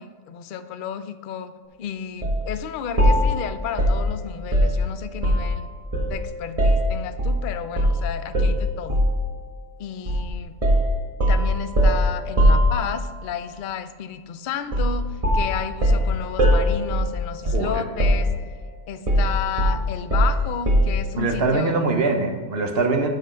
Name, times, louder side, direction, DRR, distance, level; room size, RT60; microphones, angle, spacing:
voice 1, 0.0-1.5 1.8-5.7 6.1-9.0 9.8-10.5 11.3-18.3 18.9-21.7, left 8 dB, 65° left, 10 dB, 0.5 m, -32 dB
sound 1, 2.2-2.4 3.0-5.6 5.9-7.4 7.8-8.0 8.3-9.2 10.1-10.3 10.6-13.2 14.7-15.0 15.2-17.7 18.0-18.6 19.1-21.0, equal, 25° right, 1.5 m, -20 dB
voice 2, 17.4-17.8 21.2-23.1, right 3 dB, 45° right, 4 dB, 1.0 m, -23 dB
7.9 x 7.4 x 4.4 m, 1.5 s
omnidirectional pair, 1.6 m